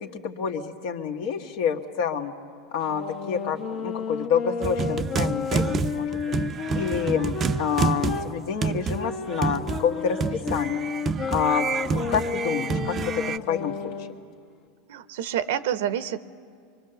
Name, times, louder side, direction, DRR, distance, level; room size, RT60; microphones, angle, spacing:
voice 1, 0.0-2.3 2.7-6.1 6.7-10.2 10.5-10.8 11.3-13.7, left 7 dB, 65° left, 5 dB, 1.5 m, -28 dB
sound 1, 2.8-8.3 8.9-14.1, left 5 dB, 50° left, 1.0 m, -32 dB
sound 2, 4.6-13.4, right 5 dB, 30° right, 0.5 m, -28 dB
voice 2, 14.9-16.2, right 10 dB, 75° right, 13 dB, 0.8 m, -28 dB
25.0 x 22.0 x 6.9 m, 2.3 s
supercardioid pair, 120°, 0 cm